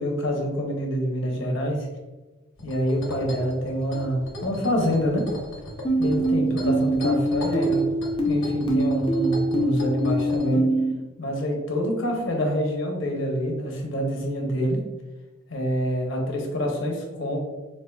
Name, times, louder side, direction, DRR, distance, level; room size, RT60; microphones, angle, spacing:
voice 1, 0.0-1.9 2.6-5.2 6.0-7.8 8.2-10.6 11.2-14.8 15.5-17.4, equal, 65° left, 1 dB, 0.7 m, -26 dB
sound 1, 2.6-10.5, left 1 dB, 90° left, 1.0 m, -37 dB
sound 2, 5.8-10.9, right 1 dB, 25° left, 0.4 m, -24 dB
4.4 x 2.5 x 2.2 m, 1.2 s
head